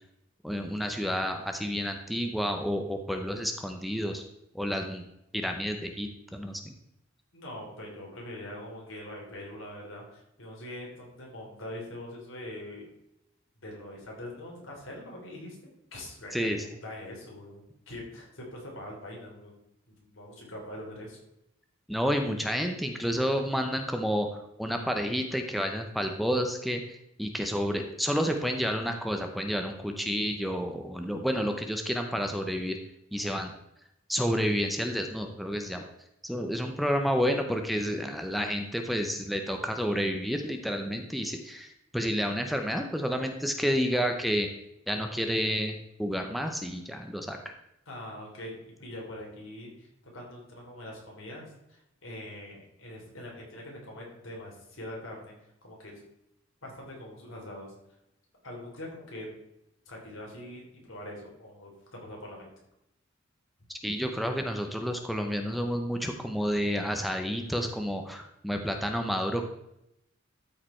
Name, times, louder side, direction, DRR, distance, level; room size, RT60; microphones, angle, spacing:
voice 1, 0.4-4.2 4.5-5.0 5.3-6.7 16.3-16.6 21.9-24.3 24.6-32.8 33.1-33.5 34.1-35.8 36.2-44.5 44.9-47.5 63.8-69.4, equal, ahead, 4 dB, 0.7 m, -30 dB
voice 2, 7.3-12.9 13.6-15.6 15.9-19.6 19.9-21.2 47.9-49.9 50.1-55.3 55.6-56.0 56.6-57.7 58.4-59.3 59.9-62.5, left 1 dB, 80° left, -2 dB, 3.5 m, -43 dB
13.0 x 4.9 x 4.4 m, 0.83 s
head